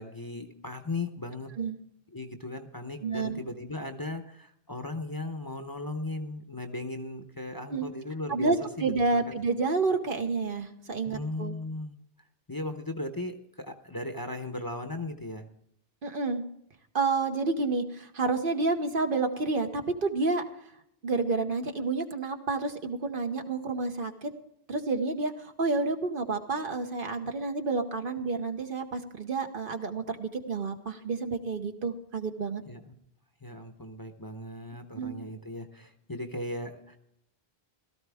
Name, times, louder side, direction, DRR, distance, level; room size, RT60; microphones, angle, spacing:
voice 1, 0.0-1.5 2.1-9.2 11.1-11.9 12.5-15.5 32.7-32.9 33.4-37.0, left 2 dB, 25° left, 5 dB, 0.8 m, -37 dB
voice 2, 3.0-3.4 7.7-7.9 8.3-11.5 16.0-16.4 16.9-20.4 21.0-24.3 24.7-32.6 34.9-35.2, right 3 dB, 60° right, 6 dB, 1.2 m, -29 dB
16.5 x 13.5 x 3.5 m, 0.74 s
omnidirectional pair, 1.0 m